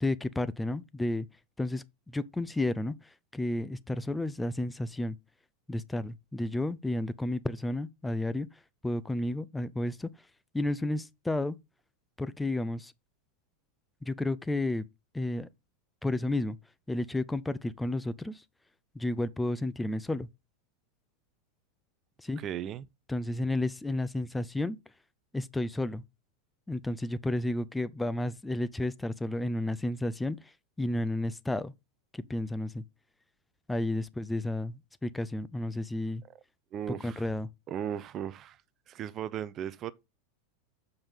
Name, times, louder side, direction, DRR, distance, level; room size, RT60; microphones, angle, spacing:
voice 1, 0.0-1.3 1.6-5.2 5.7-10.1 10.5-11.6 12.2-12.9 14.0-14.9 15.1-15.5 16.0-16.6 16.9-18.4 18.9-20.3 22.2-22.4 23.1-24.8 25.3-26.0 26.7-31.7 32.1-32.8 33.7-36.2 36.9-37.5, left 1 dB, 10° left, 0.6 m, -32 dB
voice 2, 22.4-22.9 36.7-37.2 37.7-38.6 38.9-39.9, right 9 dB, 35° right, 0.6 m, -36 dB
7.0 x 5.3 x 5.4 m
figure-of-eight pair, 85°, 0 cm